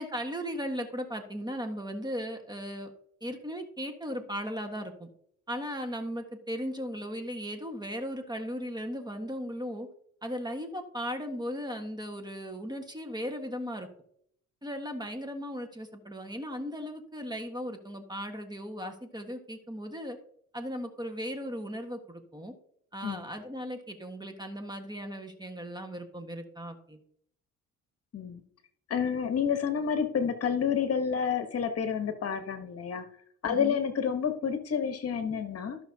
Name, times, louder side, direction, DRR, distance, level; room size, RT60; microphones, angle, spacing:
voice 1, 0.0-2.9 3.2-5.1 5.5-9.9 10.2-13.9 14.6-20.2 20.5-22.5 22.9-27.0 33.5-33.8, equal, 15° right, 5 dB, 1.4 m, -37 dB
voice 2, 28.9-33.0 33.4-35.8, left 7 dB, 55° left, 8 dB, 1.2 m, -29 dB
14.0 x 6.1 x 2.8 m, 0.66 s
cardioid pair, 90°, 30 cm